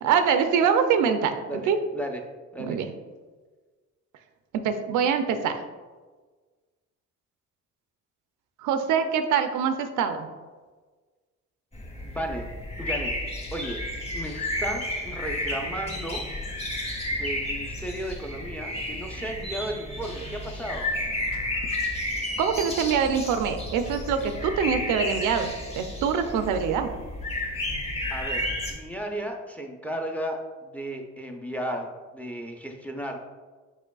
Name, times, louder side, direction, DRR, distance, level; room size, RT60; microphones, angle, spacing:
voice 1, 0.0-1.4 1.7-1.8 2.6-2.9 4.5-5.6 8.6-10.3 22.4-26.9, right 7 dB, 85° right, 8 dB, 0.5 m, -24 dB
voice 2, 1.5-2.2 2.5-2.8 12.0-12.5 12.8-13.1 13.5-13.8 14.1-16.2 17.1-20.9 28.1-33.2, right 1 dB, 5° left, 2 dB, 0.5 m, -34 dB
sound 1, 11.7-28.7, left 1 dB, 20° left, 1.0 m, -32 dB
Vehicle / Accelerating revving vroom / Squeak, 12.3-29.2, left 2 dB, 75° left, 1.1 m, -46 dB
4.9 x 4.5 x 2.3 m, 1.4 s
cardioid pair, 90°, 30 cm